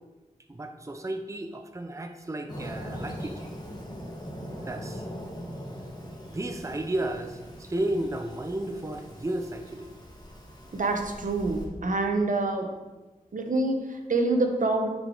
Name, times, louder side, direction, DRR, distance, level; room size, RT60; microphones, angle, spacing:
voice 1, 0.5-3.3 4.6-5.0 6.3-9.9, right 1 dB, 20° right, 6 dB, 0.6 m, -33 dB
Fireworks, 2.5-11.7, equal, 30° left, 1.7 m, -41 dB
voice 2, 10.7-12.7 13.3-14.9, right 2 dB, 65° right, 3 dB, 1.0 m, -26 dB
9.5 x 5.0 x 3.9 m, 1.2 s
wide cardioid pair, 80°, 14 cm